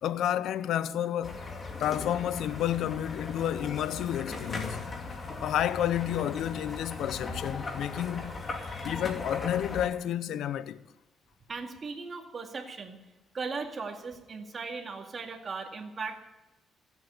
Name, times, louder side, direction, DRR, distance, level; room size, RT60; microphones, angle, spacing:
voice 1, 0.0-1.5 1.8-4.9 5.4-8.3 8.8-10.8, left 11 dB, 80° left, 0.6 m, -30 dB
sound 1, 1.2-9.9, left 3 dB, 35° left, 2.5 m, -38 dB
voice 2, 8.5-9.1 11.5-13.0 13.3-16.2, right 4 dB, 40° right, 2.2 m, -38 dB
15.5 x 8.2 x 9.9 m
cardioid pair, 90°, 0 cm